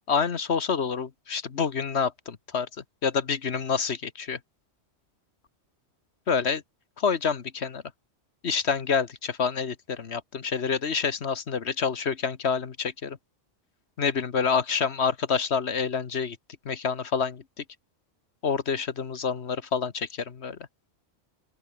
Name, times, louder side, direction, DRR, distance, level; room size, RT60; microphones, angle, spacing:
voice 1, 0.1-2.7 3.0-4.4 6.3-6.6 7.0-7.8 8.4-13.2 14.0-16.4 16.6-17.6 18.4-20.6, left 6 dB, 60° left, 1.5 m, -27 dB
open air
omnidirectional pair, 1.3 m